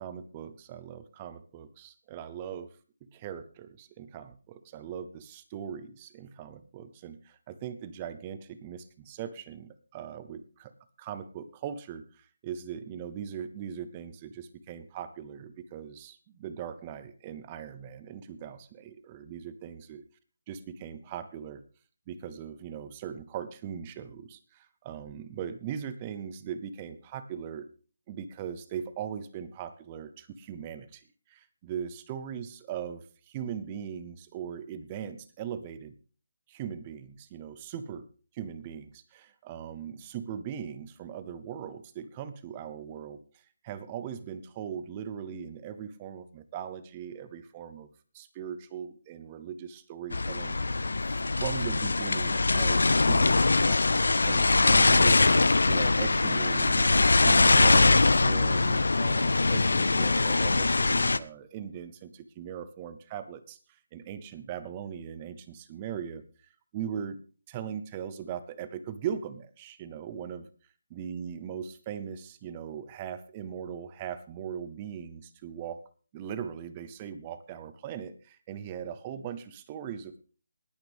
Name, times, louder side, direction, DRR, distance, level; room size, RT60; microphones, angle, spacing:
voice 1, 0.0-10.7 11.0-20.0 20.5-21.6 22.1-27.7 28.1-35.9 36.5-38.1 38.3-43.2 43.6-47.9 48.1-50.6 51.4-53.9 54.3-55.2 55.7-66.2 66.7-67.2 67.5-70.4 70.9-75.8 76.1-80.2, right 8 dB, 20° right, 12 dB, 0.7 m, -40 dB
sound 1, 50.1-61.2, left 3 dB, 85° left, 0.7 m, -22 dB
20.0 x 9.3 x 3.6 m, 0.37 s
hypercardioid pair, 170°, 0 cm